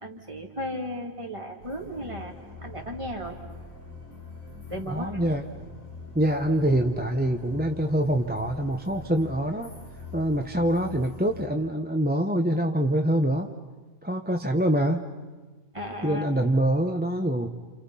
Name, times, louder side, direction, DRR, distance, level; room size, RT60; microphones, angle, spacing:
voice 1, 0.0-2.3 2.6-3.4 4.7-5.2 15.7-16.3, equal, 25° right, 1 dB, 2.9 m, -35 dB
sound 1, 1.6-11.5, left 3 dB, 80° left, 6.5 m, -43 dB
voice 2, 4.9-5.5 6.1-9.7 10.1-13.5 14.0-15.1 16.0-17.5, right 1 dB, 10° right, 3 dB, 0.8 m, -25 dB
29.5 x 29.0 x 5.7 m, 1.3 s
omnidirectional pair, 1.3 m